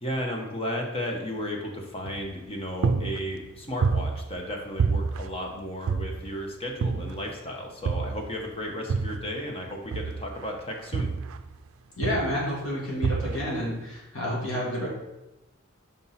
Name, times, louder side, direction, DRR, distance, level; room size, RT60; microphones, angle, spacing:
voice 1, 0.0-11.1, equal, 30° left, 1 dB, 1.0 m, -34 dB
sound 1, 2.1-2.5 2.8-4.5 4.8-6.4 6.8-7.4 7.9-9.4 9.9-11.7 12.0-12.5 13.0-13.6, right 5 dB, 85° right, 0.4 m, -28 dB
voice 2, 12.0-14.9, equal, 80° left, -5 dB, 2.0 m, -30 dB
5.5 x 5.3 x 4.1 m, 0.98 s
head